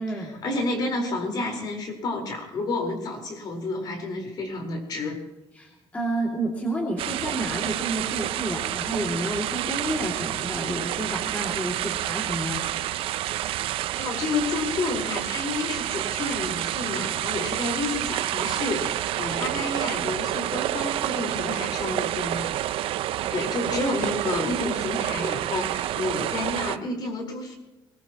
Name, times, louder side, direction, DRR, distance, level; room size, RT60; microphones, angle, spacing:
voice 1, 0.0-5.2 14.0-22.5 23.3-27.5, left 2 dB, 45° left, 2 dB, 4.5 m, -30 dB
voice 2, 5.5-12.6, right 1 dB, 15° left, -1 dB, 2.6 m, -30 dB
sound 1, 7.0-26.8, right 13 dB, 70° right, 0.6 m, -29 dB
22.0 x 20.5 x 3.1 m, 1.0 s
cardioid pair, 160°, 10 cm